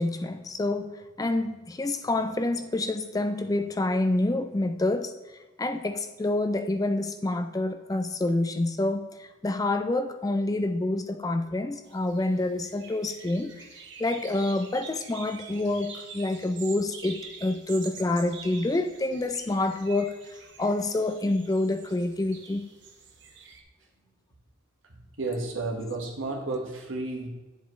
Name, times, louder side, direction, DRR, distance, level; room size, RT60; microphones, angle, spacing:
voice 1, 0.0-5.1 5.6-13.6 14.0-22.6, left 2 dB, 20° left, 0.3 m, -27 dB
sound 1, 11.9-23.6, right 5 dB, 60° right, 1.1 m, -46 dB
voice 2, 25.2-27.3, right 2 dB, 80° right, 1.5 m, -32 dB
10.5 x 7.3 x 3.2 m
head